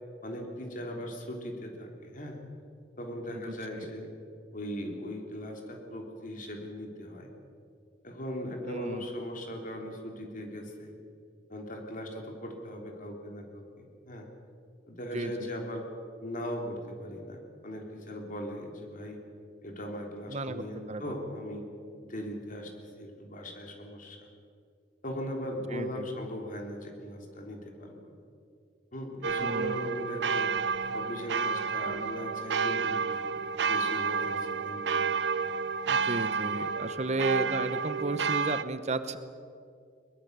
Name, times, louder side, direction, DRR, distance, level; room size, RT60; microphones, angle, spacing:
voice 1, 0.2-2.4 3.0-4.1 4.5-7.3 8.0-10.9 11.5-14.3 14.9-15.9 16.2-19.2 19.6-21.7 22.0-24.2 25.0-28.1 28.9-30.5 30.9-33.2 33.6-35.1, equal, 50° left, 2 dB, 3.6 m, -39 dB
voice 2, 3.3-3.9 8.6-9.0 15.1-15.5 20.3-21.2 25.7-26.1 29.4-29.9 35.9-39.2, right 2 dB, 40° right, 11 dB, 0.9 m, -34 dB
sound 1, 29.2-38.6, right 5 dB, 70° right, 0.6 m, -30 dB
22.0 x 21.0 x 6.9 m, 2.4 s
head